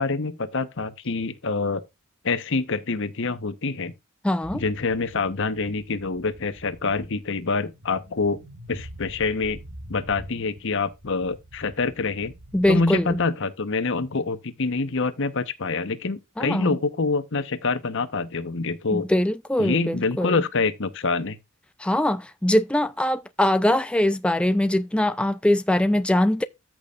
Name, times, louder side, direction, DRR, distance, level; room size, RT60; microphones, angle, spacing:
voice 1, 0.0-1.8 2.2-3.9 4.5-8.4 8.7-9.6 9.9-12.3 12.7-19.1 19.6-21.4, left 4 dB, 65° left, 1.1 m, -26 dB
voice 2, 4.2-4.6 12.5-13.2 16.4-16.8 18.9-20.4 21.8-26.4, left 1 dB, 5° left, 0.4 m, -22 dB
sound 1, 4.4-13.3, right 1 dB, 70° right, 2.0 m, -45 dB
14.0 x 6.1 x 2.5 m
head